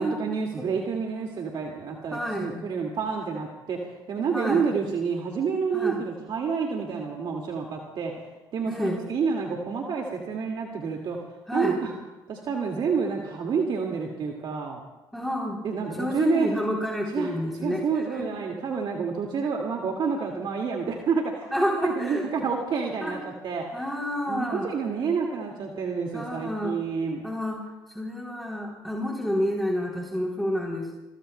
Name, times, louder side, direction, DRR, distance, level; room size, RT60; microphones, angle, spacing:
voice 1, 0.0-3.8 4.1-8.3 8.5-11.2 11.5-11.9 12.3-14.8 15.6-16.5 17.1-17.3 17.6-21.5 21.8-23.8 24.3-27.2, right 5 dB, 60° right, 1 dB, 2.1 m, -29 dB
voice 2, 2.1-2.6 4.3-4.6 5.7-6.0 8.7-9.0 11.5-11.8 15.1-15.6 15.9-17.8 18.2-18.3 21.5-22.3 23.0-23.1 23.7-24.7 26.1-26.8 27.2-27.6 27.9-30.9, equal, ahead, -2 dB, 3.4 m, -28 dB
27.0 x 22.5 x 2.2 m, 1.1 s
supercardioid pair, 65°, 9 cm